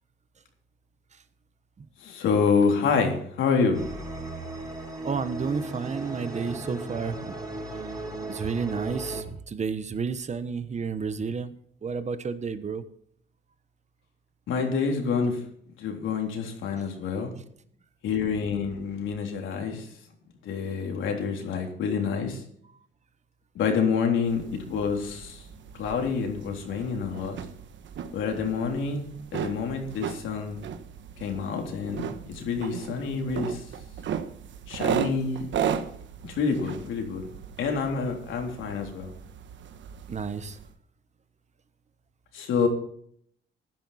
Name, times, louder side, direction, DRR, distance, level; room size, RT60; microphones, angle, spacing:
voice 1, 2.0-3.8 14.5-15.4 15.8-17.3 18.0-19.9 20.4-22.4 23.6-25.4 25.8-27.4 28.1-29.0 29.3-30.6 31.2-33.6 34.7-35.5 36.2-37.3 37.6-39.1 42.3-42.7, left 5 dB, 80° left, 2 dB, 3.5 m, -27 dB
sound 1, 3.7-9.2, right 2 dB, 20° right, 4.3 m, -36 dB
voice 2, 5.0-7.3 8.3-11.5 11.8-12.8 40.1-40.6, right 5 dB, 35° right, 11 dB, 1.1 m, -31 dB
sound 2, 24.2-40.7, right 8 dB, 70° right, 1.2 m, -36 dB
15.0 x 10.5 x 4.2 m, 0.66 s
cardioid pair, 90°, 20 cm